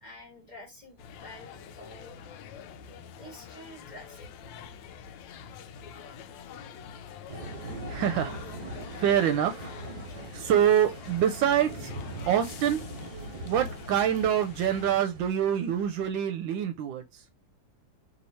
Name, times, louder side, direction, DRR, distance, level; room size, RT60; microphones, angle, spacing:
voice 1, 0.0-2.2 3.2-4.3, left 1 dB, 25° left, 1.3 m, -48 dB
sound 1, 1.0-15.0, left 7 dB, 80° left, 1.3 m, -46 dB
sound 2, 7.3-16.1, right 1 dB, 55° right, 1.5 m, -41 dB
voice 2, 7.9-8.4 8.6-9.7 10.3-11.9 12.3-12.9 13.1-17.2, right 9 dB, 85° right, 1.3 m, -26 dB
3.3 x 2.9 x 4.1 m
omnidirectional pair, 2.1 m